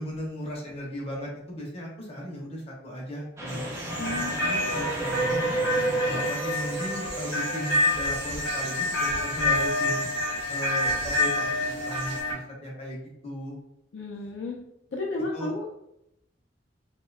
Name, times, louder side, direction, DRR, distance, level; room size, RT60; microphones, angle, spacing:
voice 1, 0.0-3.8 4.4-5.6 6.0-10.1 10.5-13.6 15.3-15.5, equal, 35° left, -3 dB, 0.7 m, -36 dB
Train, 3.4-8.6, right 2 dB, 15° right, 0.4 m, -31 dB
sound 1, 3.5-12.2, right 2 dB, 60° right, 0.6 m, -40 dB
sound 2, 3.9-12.3, left 2 dB, 90° left, 0.8 m, -28 dB
voice 2, 4.0-4.5 13.9-14.6 14.9-15.8, left 2 dB, 65° left, -2 dB, 0.4 m, -33 dB
2.7 x 2.2 x 2.3 m, 0.80 s
head